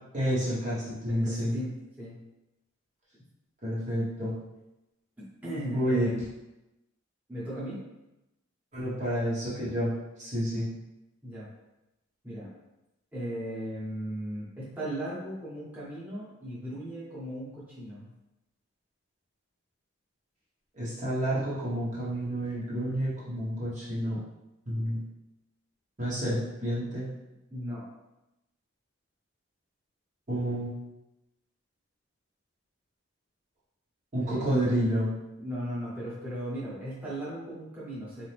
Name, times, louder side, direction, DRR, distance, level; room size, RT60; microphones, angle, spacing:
voice 1, 0.1-1.5 3.6-4.3 5.7-6.1 8.7-9.9 10.2-10.7 20.8-24.2 24.7-25.0 26.0-27.1 30.3-30.7 34.1-35.1, equal, 35° right, -9 dB, 1.1 m, -29 dB
voice 2, 1.1-2.2 5.4-6.2 7.3-7.8 11.2-11.5 12.2-12.5 13.1-18.1 27.5-27.8 34.2-34.5 35.4-38.3, equal, 5° right, -10 dB, 1.2 m, -37 dB
4.2 x 2.8 x 3.4 m, 0.94 s
head